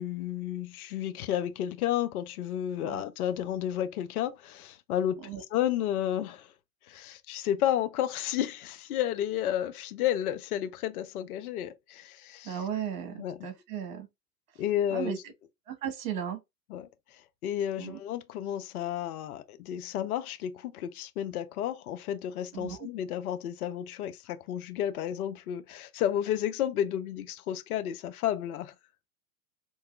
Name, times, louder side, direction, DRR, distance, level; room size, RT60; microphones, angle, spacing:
voice 1, 0.0-6.5 6.9-12.6 13.2-13.5 14.6-15.2 16.7-28.7, left 11 dB, 60° left, 0.7 m, -32 dB
voice 2, 12.4-14.1 14.9-15.2 15.7-16.4 17.8-18.0 22.5-22.9, right 9 dB, 50° right, 1.4 m, -35 dB
4.5 x 2.8 x 2.2 m
figure-of-eight pair, 90°, 49 cm